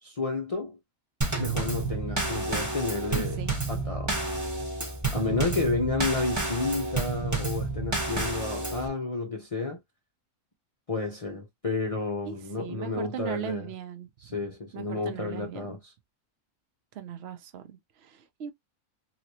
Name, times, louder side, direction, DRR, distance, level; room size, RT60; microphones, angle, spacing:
voice 1, 0.0-0.8 1.4-3.4 3.7-4.2 5.1-9.8 10.9-13.7 14.2-15.9, left 3 dB, 35° left, 0.5 m, -31 dB
Drum kit / Snare drum / Bass drum, 1.2-8.9, right 3 dB, 15° right, 0.9 m, -30 dB
voice 2, 3.2-3.6 12.3-14.1 14.7-15.7 16.9-18.5, right 9 dB, 55° right, 0.9 m, -38 dB
3.0 x 3.0 x 2.8 m
omnidirectional pair, 1.5 m